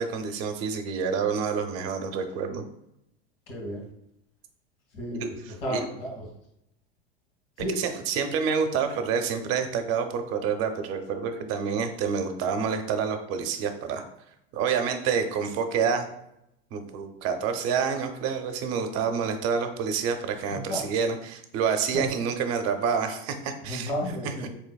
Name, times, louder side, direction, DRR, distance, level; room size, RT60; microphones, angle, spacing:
voice 1, 0.0-2.6 5.2-5.3 5.7-5.8 7.7-14.0 14.5-16.1 16.7-23.9 24.2-24.5, right 6 dB, 50° right, 6 dB, 0.6 m, -28 dB
voice 2, 3.5-3.9 4.9-5.3 5.6-6.3 7.6-7.8 20.7-20.8 21.9-22.0 23.6-24.5, equal, 75° left, -1 dB, 1.4 m, -32 dB
3.9 x 3.0 x 2.2 m, 0.80 s
hypercardioid pair, 100°, 30 cm